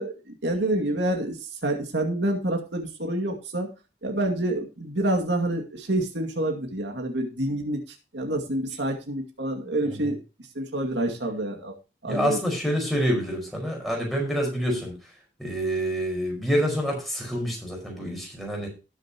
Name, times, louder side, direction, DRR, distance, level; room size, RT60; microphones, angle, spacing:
voice 1, 0.0-3.7 4.0-10.2 10.5-11.7 12.0-12.4, right 1 dB, 75° right, 2 dB, 2.3 m, -28 dB
voice 2, 12.1-14.9 15.4-18.7, equal, ahead, -1 dB, 4.8 m, -27 dB
18.5 x 7.2 x 2.9 m, 0.31 s
head